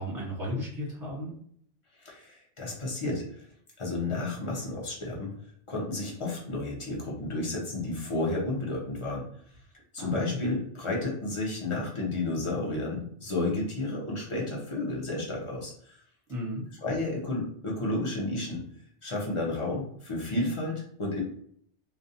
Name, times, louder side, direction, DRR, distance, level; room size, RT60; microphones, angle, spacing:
voice 1, 0.0-1.3 10.0-10.4 16.3-16.7, equal, 15° right, -7 dB, 1.1 m, -34 dB
voice 2, 2.0-3.4 3.8-5.3 5.7-9.3 9.9-16.0 16.8-18.6 19.0-21.2, left 2 dB, 30° left, -3 dB, 0.6 m, -32 dB
2.4 x 2.2 x 2.7 m, 0.63 s
omnidirectional pair, 1.2 m